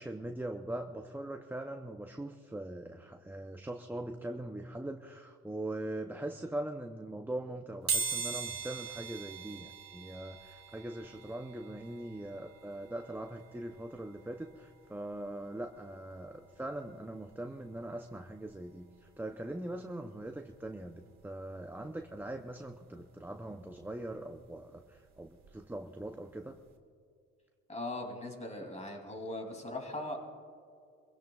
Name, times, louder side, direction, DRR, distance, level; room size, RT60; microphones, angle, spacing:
voice 1, 0.0-26.6, right 1 dB, 5° right, 4 dB, 0.6 m, -41 dB
sound 1, 7.9-18.5 19.0-19.1 20.3-20.4 20.6-22.7 23.1-25.7 26.1-26.3 26.6-26.7, right 5 dB, 65° right, 2.4 m, -42 dB
voice 2, 27.7-30.2, left 1 dB, 25° left, 2 dB, 2.8 m, -39 dB
24.0 x 16.5 x 2.4 m, 2.3 s
cardioid pair, 95°, 30 cm